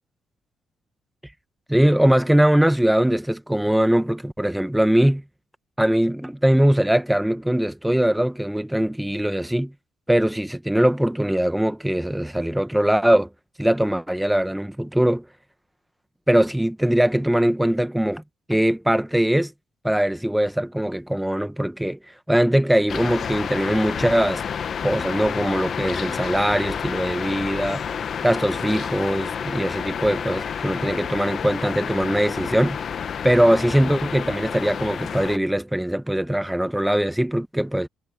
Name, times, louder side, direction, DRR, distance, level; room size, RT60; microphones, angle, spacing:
voice 1, 1.7-5.2 5.8-9.7 10.1-13.3 13.6-15.2 16.3-18.2 18.5-19.5 19.8-22.0 22.3-24.4 24.8-27.8 28.2-32.8 33.2-37.9, right 1 dB, 5° right, 1.3 m, -21 dB
sound 1, 22.9-35.4, left 7 dB, 55° left, 1.2 m, -30 dB
cardioid pair, 90°, 0 cm